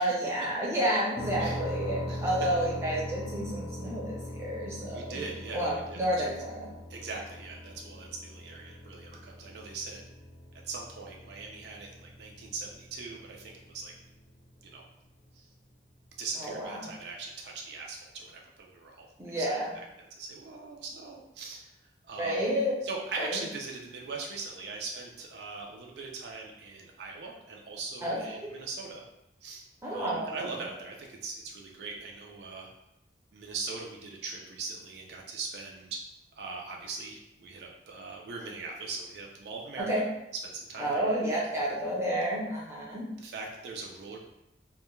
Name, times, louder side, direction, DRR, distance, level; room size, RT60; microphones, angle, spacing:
voice 1, 0.0-5.2 5.5-6.7 16.4-16.9 19.2-19.7 22.2-22.8 23.2-23.4 28.0-28.5 29.8-30.5 39.8-40.0 40.8-43.1, right 1 dB, 15° right, -5 dB, 0.5 m, -30 dB
sound 1, 1.2-14.8, equal, 30° left, 0.6 m, -41 dB
voice 2, 4.9-6.3 6.9-10.1 10.7-13.9 14.6-14.8 15.4-15.5 16.2-19.1 19.4-21.7 22.0-22.5 22.8-29.0 29.4-29.6 29.9-32.7 33.3-36.0 36.4-39.9 40.4-41.0 43.2-44.2, right 4 dB, 65° right, 0 dB, 0.4 m, -40 dB
2.1 x 2.1 x 3.0 m, 0.87 s
head